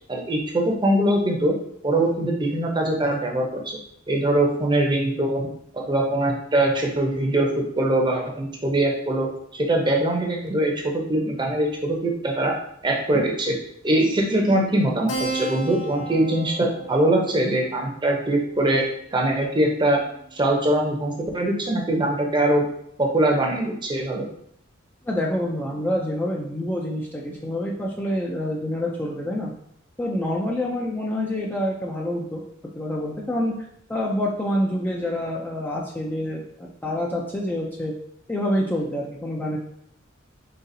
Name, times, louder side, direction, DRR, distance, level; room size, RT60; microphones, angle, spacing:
voice 1, 0.1-1.5 1.8-3.8 4.1-5.5 5.7-12.5 12.8-13.6 13.8-18.8 19.1-20.0 20.3-22.6 23.0-24.3, right 1 dB, 25° right, 0 dB, 0.7 m, -22 dB
Keyboard (musical), 15.1-20.1, right 3 dB, 70° left, 0.8 m, -35 dB
voice 2, 25.1-29.5 30.0-32.4 32.8-33.5 33.9-37.9 38.3-39.6, left 1 dB, 10° left, -2 dB, 0.4 m, -27 dB
4.0 x 3.8 x 2.7 m, 0.70 s
head